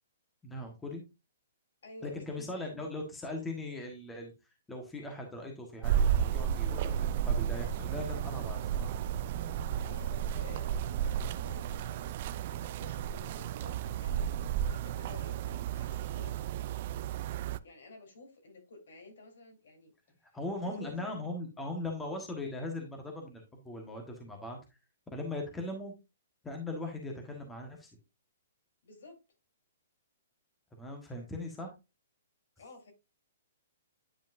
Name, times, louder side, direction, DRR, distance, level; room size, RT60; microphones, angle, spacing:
voice 1, 0.4-1.0 2.0-4.3 4.7-9.0 20.3-24.6 25.1-26.0 26.4-27.9 30.7-31.7, left 2 dB, 10° left, 2 dB, 1.4 m, -39 dB
voice 2, 1.8-2.9 9.8-14.4 14.6-16.6 17.6-19.9 20.6-21.1 28.8-29.2 32.6-32.9, left 3 dB, 75° left, 2 dB, 3.6 m, -52 dB
sound 1, 5.8-17.6, right 9 dB, 45° right, 0.4 m, -33 dB
9.6 x 5.1 x 2.6 m, 0.25 s
hypercardioid pair, 155°, 0 cm